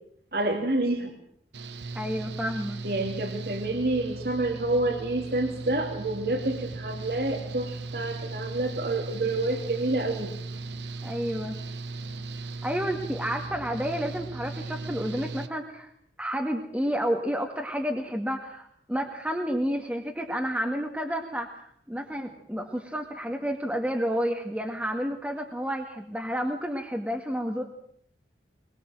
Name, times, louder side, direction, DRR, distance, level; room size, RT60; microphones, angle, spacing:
voice 1, 0.3-1.1 2.8-10.3, right 2 dB, 55° right, 4 dB, 2.7 m, -28 dB
Engine / Mechanical fan, 1.5-15.5, right 3 dB, 80° right, 1.7 m, -37 dB
voice 2, 1.9-2.8 11.0-11.6 12.6-15.9 16.2-21.6 21.9-27.6, equal, 10° right, 1 dB, 1.9 m, -30 dB
22.5 x 22.0 x 7.7 m, 0.67 s
head